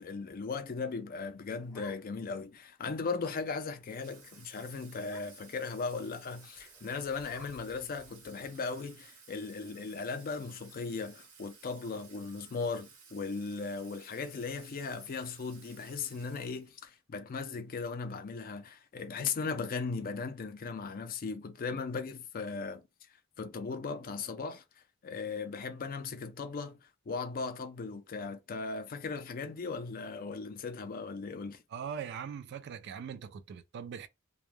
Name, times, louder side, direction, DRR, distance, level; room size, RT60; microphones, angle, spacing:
voice 1, 0.0-22.8 23.4-24.6 25.0-26.8 27.1-31.6, left 4 dB, 40° left, 0.4 m, -37 dB
sound 1, 1.2-2.4 2.8-2.9 3.2-3.5 3.8-4.0 4.3-4.5 5.0-5.6 6.5-8.6, left 1 dB, ahead, 0.6 m, -57 dB
Water tap faucet / Sink (filling or washing), 3.8-17.0, right 5 dB, 90° right, 1.0 m, -57 dB
voice 2, 31.7-34.1, right 7 dB, 50° right, 0.3 m, -41 dB
2.2 x 2.1 x 3.1 m
head